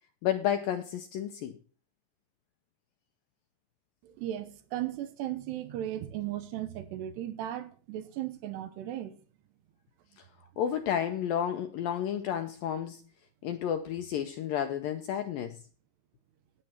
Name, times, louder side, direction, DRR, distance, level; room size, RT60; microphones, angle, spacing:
voice 1, 0.2-1.6 10.2-10.3 10.6-13.0 13.4-15.6, left 9 dB, 80° left, 2.1 m, -31 dB
voice 2, 4.0-9.1, right 12 dB, 80° right, 3.2 m, -36 dB
12.0 x 9.8 x 4.4 m
omnidirectional pair, 4.9 m